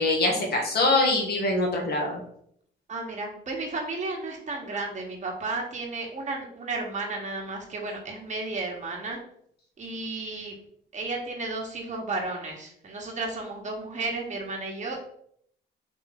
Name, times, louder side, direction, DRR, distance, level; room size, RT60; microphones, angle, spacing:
voice 1, 0.0-2.2, left 2 dB, 55° left, 1 dB, 1.4 m, -24 dB
voice 2, 2.9-9.2 9.8-10.5 10.9-15.0, right 3 dB, 35° right, 0 dB, 1.4 m, -33 dB
4.2 x 3.1 x 4.0 m, 0.67 s
cardioid pair, 90°, 20 cm